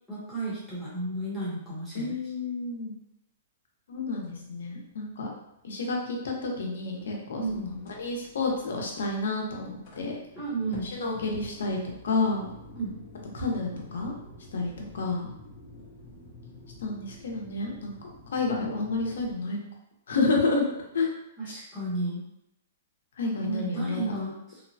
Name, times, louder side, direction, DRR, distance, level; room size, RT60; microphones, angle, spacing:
voice 1, 0.1-2.2 7.4-7.7 10.3-10.9 12.7-13.0 21.4-22.3 23.4-24.6, right 2 dB, 5° right, -10 dB, 0.9 m, -33 dB
voice 2, 1.9-3.0 3.9-5.3 5.6-10.2 10.9-11.8 12.0-12.5 13.3-14.1 14.5-15.3 16.8-19.6 20.1-20.6 20.9-21.1 23.2-24.2, left 3 dB, 85° left, 0 dB, 0.7 m, -30 dB
sound 1, 4.0-19.3, left 1 dB, 40° left, 0.6 m, -49 dB
3.0 x 2.1 x 2.6 m, 0.83 s
hypercardioid pair, 170°, 0 cm